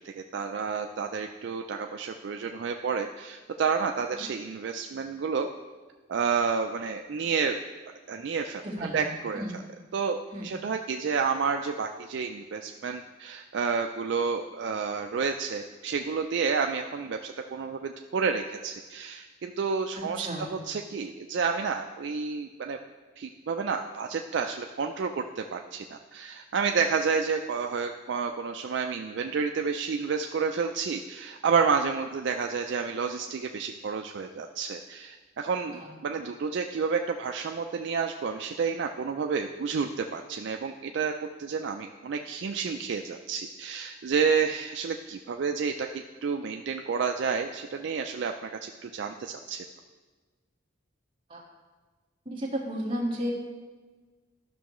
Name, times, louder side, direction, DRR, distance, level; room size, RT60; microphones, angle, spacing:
voice 1, 0.0-5.5 6.1-7.6 8.1-9.6 9.9-22.8 23.2-41.1 41.4-45.9 46.2-49.6, right 5 dB, 55° right, 4 dB, 0.3 m, -30 dB
voice 2, 8.6-9.0 9.3-9.6 10.3-10.5 20.0-20.5 35.7-35.9 51.3-51.4 52.2-53.3, equal, 25° right, -4 dB, 1.5 m, -33 dB
12.5 x 6.0 x 3.0 m, 1.3 s
head